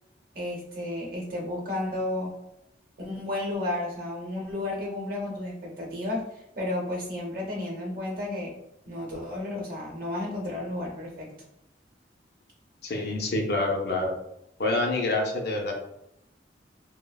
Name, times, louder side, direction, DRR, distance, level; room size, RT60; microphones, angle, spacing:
voice 1, 0.3-2.3 3.0-8.5 8.9-11.3, left 1 dB, 50° right, -1 dB, 0.8 m, -32 dB
voice 2, 12.8-14.1 14.6-15.7, left 2 dB, 60° left, 1 dB, 0.5 m, -27 dB
3.2 x 2.0 x 2.2 m, 0.81 s
head